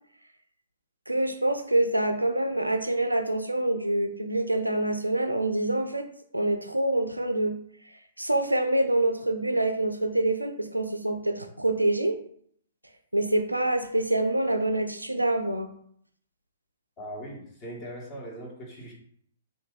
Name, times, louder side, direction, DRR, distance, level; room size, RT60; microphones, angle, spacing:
voice 1, 1.1-6.1 6.3-7.5 8.2-12.2 13.1-15.7, right 1 dB, 85° right, 6 dB, 0.4 m, -26 dB
voice 2, 17.0-18.9, right 1 dB, 30° left, -2 dB, 1.1 m, -40 dB
2.7 x 2.6 x 3.6 m, 0.64 s
figure-of-eight pair, 115°, 0 cm